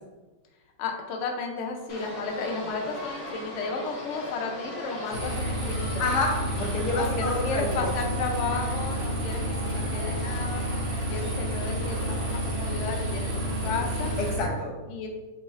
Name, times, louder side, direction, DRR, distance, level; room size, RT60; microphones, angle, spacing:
voice 1, 0.8-6.0 7.0-9.4 9.9-10.6 11.1-13.4 13.6-14.1 14.9-15.1, left 4 dB, 90° left, 2 dB, 0.6 m, -33 dB
sound 1, 1.9-14.3, left 1 dB, 45° left, 1.5 m, -39 dB
sound 2, 5.1-14.5, equal, 60° right, 0.4 m, -30 dB
voice 2, 6.0-7.9 14.2-14.7, left 2 dB, 65° left, 0 dB, 1.2 m, -28 dB
3.9 x 3.9 x 2.4 m, 1.2 s
omnidirectional pair, 1.9 m